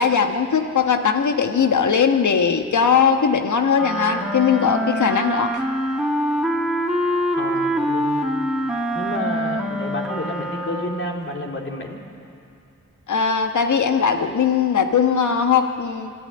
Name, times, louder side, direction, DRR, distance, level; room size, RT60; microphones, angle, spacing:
voice 1, 0.0-5.5 13.1-16.1, left 6 dB, 70° left, 6 dB, 1.4 m, -19 dB
Wind instrument woodwind instrument, 3.7-11.1, equal, ahead, 2.6 m, -24 dB
voice 2, 7.3-8.3 8.9-12.0, left 1 dB, 40° left, 0 dB, 3.4 m, -30 dB
26.0 x 11.5 x 8.8 m, 2.5 s
cardioid pair, 40°, 31 cm